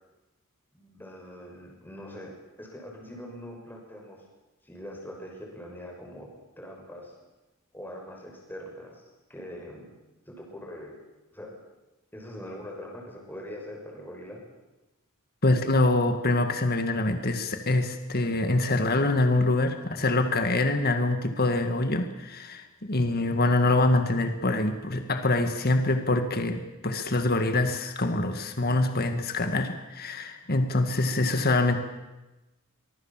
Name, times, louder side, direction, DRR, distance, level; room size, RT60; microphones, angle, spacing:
voice 1, 0.7-4.2 4.6-6.3 6.6-7.2 7.7-9.0 9.3-9.9 10.2-10.9 11.3-11.5 12.1-14.4, equal, 10° left, -1 dB, 6.3 m, -42 dB
voice 2, 15.4-31.8, left 2 dB, 45° left, 7 dB, 1.9 m, -25 dB
24.0 x 22.5 x 7.5 m, 1.1 s
head